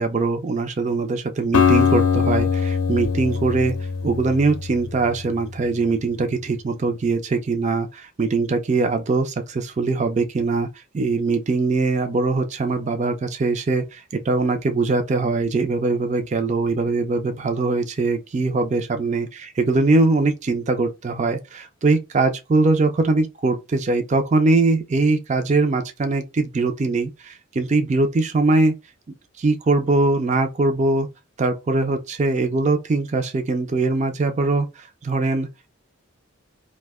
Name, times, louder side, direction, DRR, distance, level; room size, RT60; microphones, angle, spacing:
voice 1, 0.0-3.8 4.0-10.7 10.9-28.7 29.4-31.1 31.4-35.7, right 3 dB, 30° right, 0.4 m, -22 dB
Acoustic guitar, 1.5-5.6, left 6 dB, 75° left, 0.5 m, -22 dB
2.6 x 2.1 x 3.5 m
head